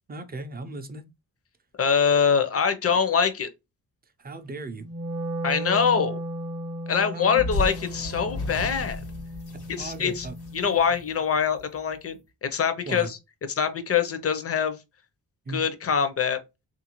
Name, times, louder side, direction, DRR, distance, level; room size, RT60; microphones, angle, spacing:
voice 1, 0.1-1.1 4.2-4.9 7.1-7.4 9.8-10.3 12.8-13.1 15.5-15.6, right 3 dB, 25° right, 0.4 m, -36 dB
voice 2, 1.8-3.5 5.4-6.2 6.9-9.0 9.7-10.3 10.5-13.2 13.5-14.8 15.5-16.4, left 6 dB, 40° left, 0.5 m, -24 dB
Wind instrument woodwind instrument, 4.8-11.0, right 1 dB, 50° right, 0.7 m, -35 dB
sound 1, 7.4-11.8, left 2 dB, 90° left, 1.2 m, -34 dB
3.5 x 2.5 x 2.9 m
wide cardioid pair, 145°, 38 cm